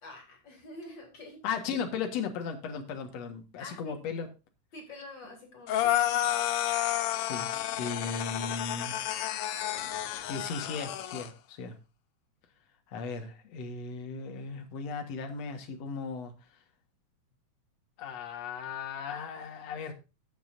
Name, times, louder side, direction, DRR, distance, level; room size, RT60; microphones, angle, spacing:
voice 1, 0.0-1.4 3.6-4.0 4.7-6.3 7.7-8.0 8.3-8.8, left 2 dB, 35° left, 1 dB, 4.3 m, -47 dB
voice 2, 1.4-4.3 6.7-6.8 7.1-8.9 10.2-11.8 12.9-16.3 18.0-19.9, left 5 dB, 60° left, 5 dB, 2.6 m, -36 dB
sound 1, 5.7-11.3, left 12 dB, 80° left, 1.2 m, -31 dB
14.5 x 8.7 x 2.6 m, 0.29 s
omnidirectional pair, 3.5 m